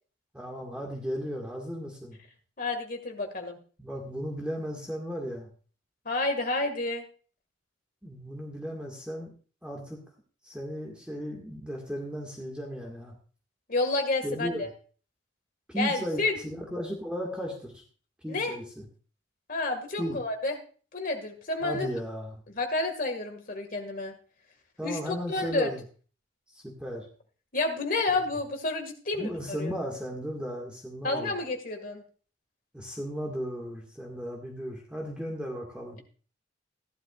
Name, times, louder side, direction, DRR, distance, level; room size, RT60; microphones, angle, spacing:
voice 1, 0.3-2.2 3.8-5.5 8.0-9.3 9.6-10.0 10.4-13.1 14.2-14.6 15.7-17.8 18.2-18.9 20.0-20.2 21.6-22.4 24.8-25.8 26.5-27.1 28.1-28.2 29.1-31.3 32.7-36.0, equal, 5° right, -1 dB, 1.8 m, -35 dB
voice 2, 2.6-3.6 6.1-7.1 13.7-14.7 15.8-16.4 18.3-18.6 19.5-20.6 20.9-21.9 22.5-24.2 24.8-25.7 27.5-29.7 31.0-32.0, left 2 dB, 45° left, 5 dB, 1.9 m, -30 dB
14.5 x 11.5 x 2.4 m, 0.40 s
head